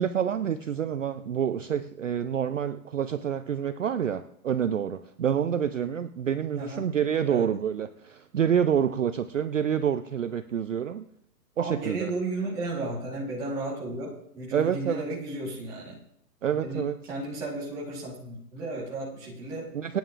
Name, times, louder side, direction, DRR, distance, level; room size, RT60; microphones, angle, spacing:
voice 1, 0.0-11.0 11.6-12.1 14.5-15.0 16.4-16.9 19.7-20.0, right 8 dB, 50° right, 11 dB, 0.5 m, -27 dB
voice 2, 6.6-6.9 7.3-7.5 11.6-16.0 16.5-19.7, right 2 dB, 5° right, -5 dB, 1.3 m, -34 dB
27.0 x 9.1 x 2.5 m, 0.73 s
hypercardioid pair, 170°, 49 cm